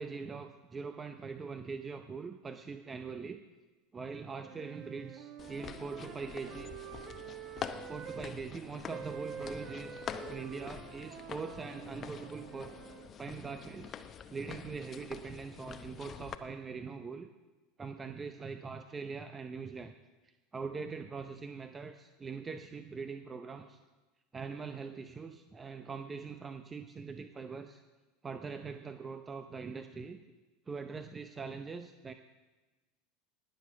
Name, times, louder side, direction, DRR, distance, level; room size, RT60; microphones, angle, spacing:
voice 1, 0.0-3.4 3.9-6.7 7.9-12.7 13.2-14.0 14.3-17.3 17.8-19.9 20.2-23.8 24.3-27.8 28.2-30.2 30.7-32.1, right 5 dB, 20° right, 8 dB, 0.7 m, -42 dB
sound 1, 4.3-8.4 8.9-13.1, right 8 dB, 45° right, 1.1 m, -47 dB
sound 2, 5.4-16.3, left 7 dB, 35° left, 0.8 m, -46 dB
19.5 x 7.5 x 6.0 m, 1.2 s
figure-of-eight pair, 80°, 0 cm